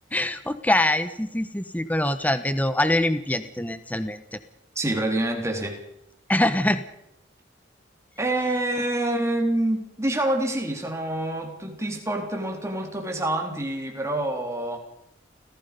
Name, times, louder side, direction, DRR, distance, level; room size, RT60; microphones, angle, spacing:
voice 1, 0.1-4.4 6.3-6.8, left 1 dB, 10° left, 11 dB, 1.2 m, -24 dB
voice 2, 4.8-5.8 8.2-14.8, right 1 dB, 15° right, 2 dB, 4.0 m, -27 dB
30.0 x 16.5 x 5.4 m, 0.77 s
head